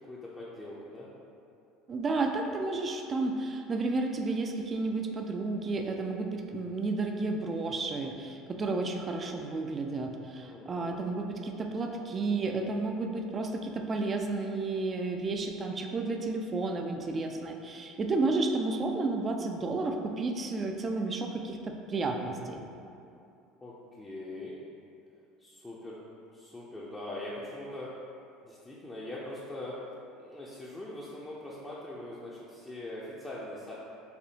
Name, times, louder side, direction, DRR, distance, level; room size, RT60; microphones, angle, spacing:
voice 1, 0.1-1.1 10.4-11.0 23.6-24.6 25.4-26.0 26.3-27.9 28.4-29.7 30.1-33.7, left 1 dB, 20° left, -7 dB, 0.5 m, -42 dB
voice 2, 1.9-22.6, right 3 dB, 35° right, 3 dB, 0.3 m, -32 dB
4.2 x 2.6 x 2.8 m, 2.6 s
hypercardioid pair, 80°, 0 cm